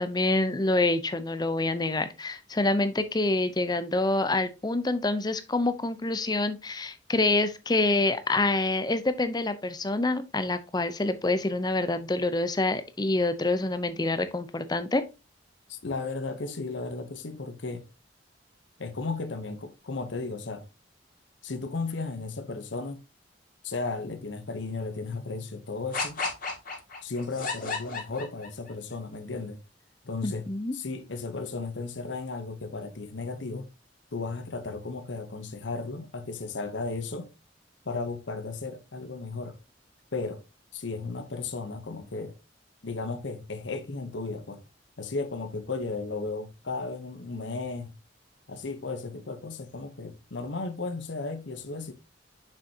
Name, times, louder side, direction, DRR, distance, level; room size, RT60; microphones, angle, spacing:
voice 1, 0.0-15.0 30.2-30.7, left 2 dB, 20° left, 0.6 m, -26 dB
voice 2, 15.7-17.8 18.8-20.7 21.4-23.0 23.6-26.2 27.0-29.6 30.0-33.7 34.1-37.3 37.8-39.6 40.1-40.4 40.7-42.3 42.8-44.6 45.0-47.9 48.5-51.9, left 3 dB, 75° left, 0.9 m, -35 dB
sound 1, 25.9-28.7, left 4 dB, 50° left, 2.0 m, -33 dB
6.7 x 6.1 x 2.8 m
head